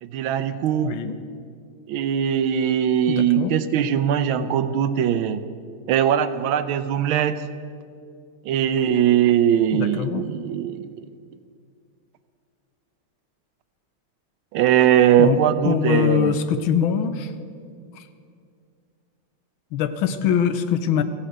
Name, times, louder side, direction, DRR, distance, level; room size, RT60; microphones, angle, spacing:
voice 1, 0.0-1.0 1.9-5.5 5.9-7.5 8.5-11.1 14.5-16.3, right 10 dB, 80° right, 12 dB, 1.4 m, -20 dB
voice 2, 0.8-1.2 3.1-3.6 9.7-10.3 15.2-15.4 15.6-17.3 17.9-18.1 19.7-21.0, left 8 dB, 75° left, 11 dB, 1.5 m, -23 dB
15.5 x 8.5 x 7.9 m, 2.3 s
omnidirectional pair, 2.4 m